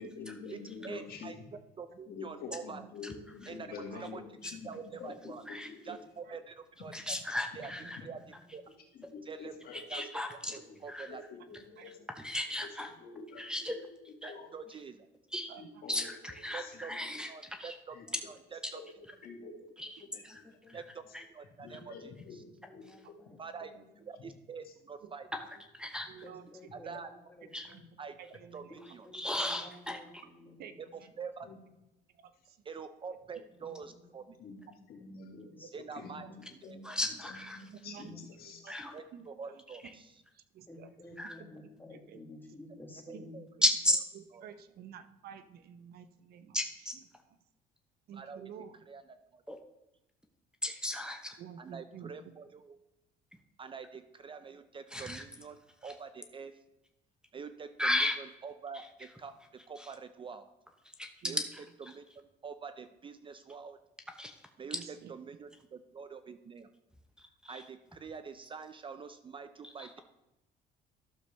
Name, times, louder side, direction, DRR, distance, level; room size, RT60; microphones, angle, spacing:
voice 1, 0.0-1.4 2.1-5.9 8.9-10.1 10.5-10.8 11.1-12.0 13.0-14.0 14.3-14.5 15.6-16.1 16.5-17.0 17.9-18.1 18.7-18.9 19.2-19.7 20.1-20.4 21.6-22.4 22.7-23.1 24.2-24.3 24.6-24.7 31.4-31.6 34.4-34.6 34.9-35.5 35.9-36.9 37.2-38.7, left 4 dB, 65° left, 2 dB, 2.0 m, -47 dB
voice 2, 0.8-1.4 1.8-2.8 3.5-3.7 4.0-4.2 4.6-5.4 5.9-6.5 6.8-6.9 7.6-7.7 8.0-8.2 8.5-8.6 9.3-9.6 9.9-10.0 10.5-11.2 14.2-15.1 16.5-16.9 17.3-18.0 18.3-18.8 20.7-21.0 21.3-22.1 23.4-23.7 24.0-25.3 26.7-27.1 28.0-28.1 28.5-28.6 28.9-29.0 30.8-30.9 31.2-31.5 32.7-34.2 35.7-37.0 38.9-40.2 43.1-43.5 48.1-48.5 48.9-49.0 49.3-49.4 51.6-52.8 53.6-56.5 57.3-58.0 58.4-59.3 59.7-60.5 61.3-61.4 61.9-63.8 64.6-64.8 65.1-66.7 67.5-70.0, right 5 dB, 30° right, 10 dB, 0.5 m, -45 dB
voice 3, 3.7-4.0 5.9-6.0 6.2-6.3 11.8-11.9 15.5-15.6 25.0-25.1 26.1-26.5 26.8-26.9 27.7-27.8 28.2-28.7 30.6-31.1 32.2-32.6 35.6-35.7 37.7-38.1 38.6-38.7 39.1-39.6 39.9-40.0 40.3-40.9 41.6-41.7 42.1-42.2 43.1-43.2 44.4-46.6 48.1-48.8 51.4-52.1 61.2-61.4 64.7-65.1, right 8 dB, 65° right, 10 dB, 0.8 m, -50 dB
voice 4, 4.7-5.1 7.7-8.5 9.6-9.7 11.5-12.1 13.1-13.2 19.4-19.5 20.0-20.8 22.0-22.1 22.4-24.1 26.2-27.9 28.7-31.2 33.5-35.0 35.4-36.3 36.7-36.8 38.0-38.2 40.7-43.4, left 2 dB, 10° left, 0 dB, 2.0 m, -54 dB
voice 5, 6.9-8.0 9.7-10.6 10.9-11.1 12.2-12.9 13.4-13.8 14.2-14.3 15.3-15.5 15.9-17.8 18.1-18.2 18.6-18.7 19.8-20.4 20.7-20.8 21.1-21.2 25.3-26.1 27.5-27.7 29.1-30.0 36.8-37.6 38.7-38.9 39.8-39.9 41.2-41.4 43.6-44.0 46.5-47.0 49.5-49.6 50.6-51.4 54.9-55.2 55.8-55.9 57.8-58.2 58.7-58.9 59.8-59.9 60.8-62.0 64.2-64.3 67.2-67.7 69.6-69.9, left 1 dB, 5° right, 5 dB, 0.8 m, -35 dB
12.5 x 6.8 x 3.3 m, 0.94 s
cardioid pair, 110°, 17 cm